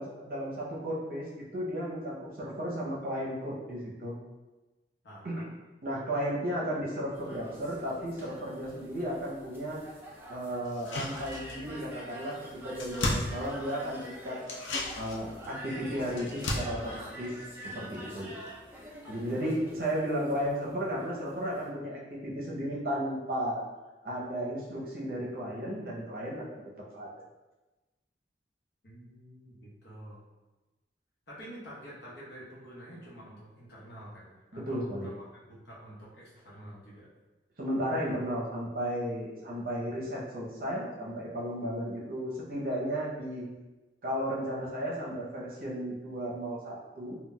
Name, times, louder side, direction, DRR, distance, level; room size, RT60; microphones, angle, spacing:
voice 1, 0.0-4.2 5.2-5.5 5.8-9.8 10.3-12.4 12.6-14.4 15.0-17.4 17.7-18.3 19.1-23.6 24.0-26.4 26.9-27.1 34.5-35.1 37.6-43.5 44.0-47.2, equal, 50° right, -4 dB, 0.6 m, -34 dB
voice 2, 5.0-5.5 18.0-18.1 28.8-30.2 31.3-37.1, equal, 65° left, -6 dB, 0.9 m, -48 dB
sound 1, 7.1-21.7, right 1 dB, 10° right, 0.4 m, -47 dB
sound 2, 10.7-11.8 12.1-12.2 12.5-14.0 14.4-18.2 18.5-18.6, left 2 dB, 90° left, 0.5 m, -36 dB
3.8 x 2.2 x 2.2 m, 1.1 s
head